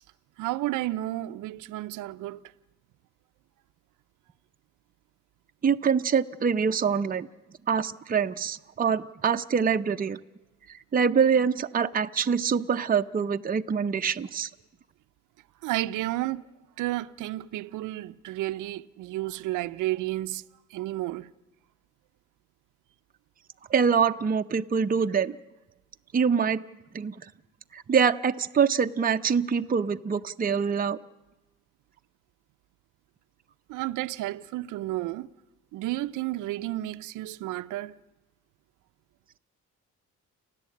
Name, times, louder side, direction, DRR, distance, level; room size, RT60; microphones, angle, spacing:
voice 1, 0.4-2.4 15.6-16.4 16.8-21.3 33.7-35.3 35.7-38.0, right 16 dB, 90° right, 0.7 m, -32 dB
voice 2, 5.6-7.3 7.7-10.2 10.7-14.5 23.7-25.4 26.1-26.6 26.9-27.1 27.7-31.0, right 6 dB, 30° right, 0.7 m, -25 dB
29.5 x 11.0 x 8.5 m
cardioid pair, 90°, 30 cm